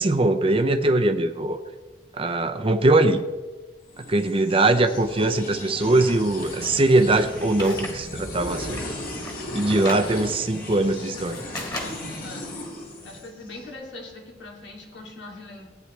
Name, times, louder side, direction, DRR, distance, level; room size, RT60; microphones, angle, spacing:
voice 1, 0.0-1.6 2.2-3.2 4.1-8.8 9.5-11.4, right 2 dB, 30° right, 7 dB, 0.6 m, -21 dB
sound 1, 3.9-13.6, left 1 dB, 55° left, 2.1 m, -36 dB
sound 2, 6.4-8.0 8.3-10.1 10.7-12.2, left 1 dB, 20° left, 1.8 m, -37 dB
voice 2, 13.0-15.7, left 2 dB, 90° left, -1 dB, 2.7 m, -41 dB
16.5 x 9.3 x 3.3 m, 1.2 s
head